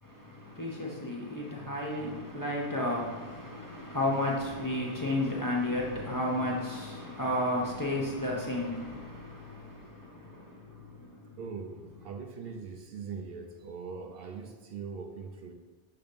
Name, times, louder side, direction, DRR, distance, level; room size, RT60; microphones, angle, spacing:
voice 1, 0.0-11.3, left 1 dB, 20° left, 0.7 m, -33 dB
voice 2, 11.4-15.5, right 5 dB, 65° right, 0.7 m, -41 dB
6.7 x 2.8 x 5.1 m
omnidirectional pair, 1.1 m